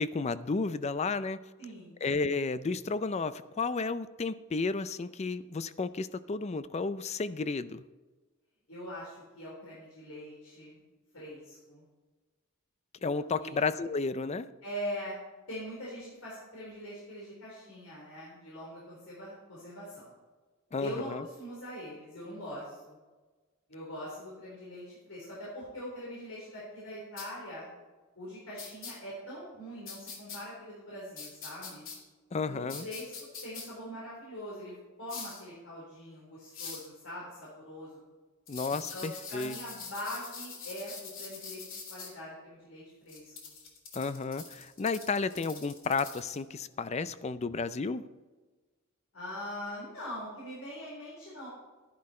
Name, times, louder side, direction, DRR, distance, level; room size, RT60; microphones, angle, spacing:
voice 1, 0.0-1.4 2.0-7.8 13.0-14.5 20.7-21.2 32.3-32.8 38.5-39.6 43.9-48.0, left 4 dB, 30° left, 14 dB, 0.4 m, -32 dB
voice 2, 1.6-2.0 8.7-10.8 11.1-11.8 13.0-13.1 13.4-13.6 14.6-15.1 15.5-20.1 20.8-23.0 23.7-27.7 28.2-31.8 32.5-33.1 33.4-38.0 38.7-43.5 49.1-51.5, equal, 85° left, -6 dB, 4.0 m, -42 dB
sound 1, 27.2-27.3 28.6-28.9 29.9-30.4 31.2-32.0 32.7-33.6 35.1-35.4 36.5-36.9 38.5-42.1 43.1-46.4, left 5 dB, 65° left, 2.9 m, -44 dB
12.0 x 11.0 x 4.3 m, 1.3 s
head